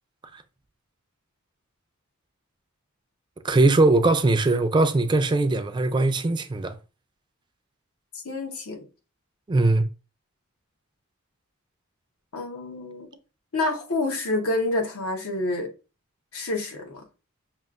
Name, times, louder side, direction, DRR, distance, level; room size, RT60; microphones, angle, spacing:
voice 1, 3.4-6.8 9.5-9.9, right 2 dB, 20° right, 0.3 m, -20 dB
voice 2, 8.1-8.9 12.3-13.1 13.5-15.7 16.3-17.0, left 2 dB, 85° left, 1.0 m, -28 dB
6.2 x 2.4 x 2.4 m
head